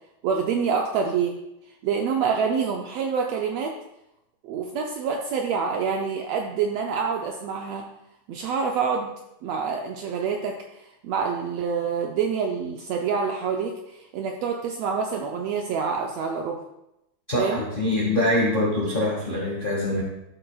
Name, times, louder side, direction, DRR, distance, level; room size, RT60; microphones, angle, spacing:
voice 1, 0.2-1.4 1.8-3.8 4.4-7.9 8.3-9.1 9.4-16.6 17.4-17.6, right 6 dB, 75° right, 2 dB, 1.6 m, -27 dB
voice 2, 17.3-20.0, left 1 dB, 25° left, -4 dB, 1.1 m, -24 dB
12.0 x 7.9 x 2.3 m, 0.86 s
omnidirectional pair, 3.5 m